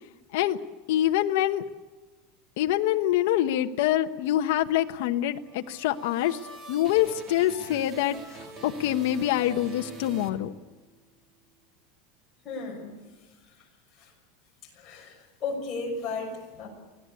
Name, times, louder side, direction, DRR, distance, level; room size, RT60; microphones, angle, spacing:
voice 1, 0.9-1.6 2.6-6.4 6.7-10.5, left 12 dB, 60° left, 6 dB, 1.0 m, -25 dB
sound 1, 5.4-11.0, right 3 dB, 25° right, 2.5 m, -45 dB
voice 2, 12.4-12.9 14.0-14.1 14.8-16.7, left 3 dB, 20° left, -1 dB, 6.1 m, -34 dB
25.0 x 17.0 x 8.5 m, 1.3 s
supercardioid pair, 175°, 0 cm